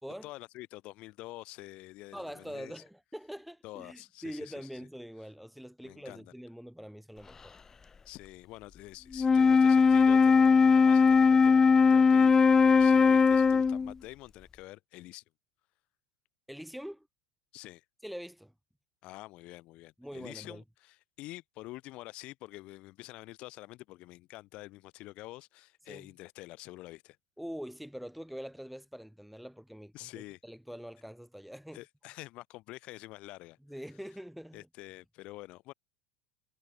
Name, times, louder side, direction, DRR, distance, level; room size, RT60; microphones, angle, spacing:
voice 1, 0.2-2.8 3.6-4.9 5.8-6.3 8.0-15.2 17.5-17.8 19.0-27.2 29.9-30.4 31.7-33.6 34.5-35.7, left 19 dB, 55° left, 4.3 m, -47 dB
voice 2, 2.1-7.5 16.5-17.1 18.0-18.5 20.0-20.6 25.9-26.1 27.4-31.8 33.7-34.7, equal, ahead, 5.4 m, -44 dB
Wind instrument woodwind instrument, 9.1-13.9, left 5 dB, 20° left, 0.4 m, -20 dB
hypercardioid pair, 90°, 2 cm